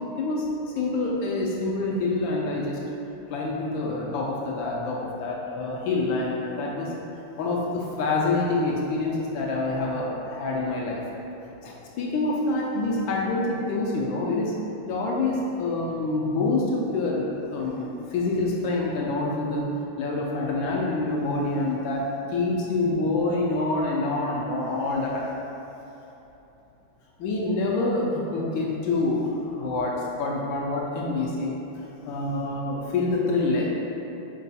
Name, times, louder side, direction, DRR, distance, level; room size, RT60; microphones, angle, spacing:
voice 1, 0.2-0.5 0.8-2.8 3.3-6.9 7.4-11.0 11.6-14.5 14.9-19.6 20.0-22.0 22.3-25.3 27.2-29.9 30.2-31.5 32.0-33.7, left 2 dB, 75° left, -3 dB, 1.2 m, -26 dB
5.4 x 2.3 x 3.9 m, 2.9 s
omnidirectional pair, 2.4 m